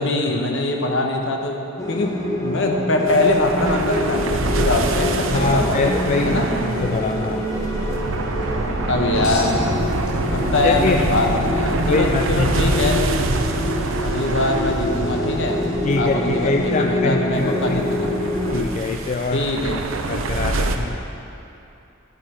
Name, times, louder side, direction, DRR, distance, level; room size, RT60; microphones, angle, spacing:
voice 1, 0.0-2.2 2.4-5.9 6.3-6.5 8.9-9.7 10.2-13.1 14.0-15.6 16.0-18.1 19.3-19.8, left 2 dB, 60° left, 2 dB, 1.1 m, -22 dB
sound 1, 1.8-18.6, left 1 dB, 15° left, 1.2 m, -26 dB
sound 2, 3.1-20.8, right 2 dB, 70° right, 0.7 m, -26 dB
voice 2, 5.3-7.6 10.6-11.1 11.8-12.8 15.8-17.8 18.5-19.5 20.1-21.0, left 3 dB, 35° left, 4 dB, 0.3 m, -24 dB
sound 3, 9.1-10.7 11.2-11.8 13.4-13.5, left 2 dB, 90° left, 1.9 m, -34 dB
12.0 x 9.8 x 4.4 m, 2.8 s
head